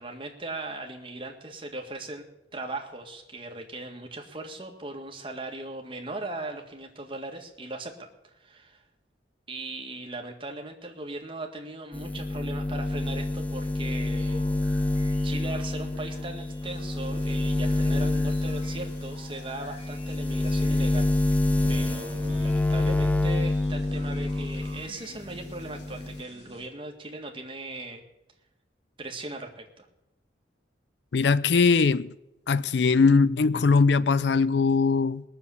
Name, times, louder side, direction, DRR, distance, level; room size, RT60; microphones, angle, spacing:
voice 1, 0.0-2.3 2.5-8.8 9.5-14.9 15.2-21.1 21.7-28.0 29.0-29.9, right 2 dB, 30° right, 1.8 m, -38 dB
sound 1, 11.9-24.9 25.2-26.2, left 2 dB, 10° left, 0.5 m, -27 dB
sound 2, 14.2-25.3, left 1 dB, 30° left, 6.2 m, -52 dB
sound 3, 16.6-26.7, left 1 dB, 90° left, 4.5 m, -50 dB
voice 2, 31.1-32.1 32.5-35.2, left 4 dB, 70° left, 0.5 m, -21 dB
19.5 x 7.0 x 8.4 m
head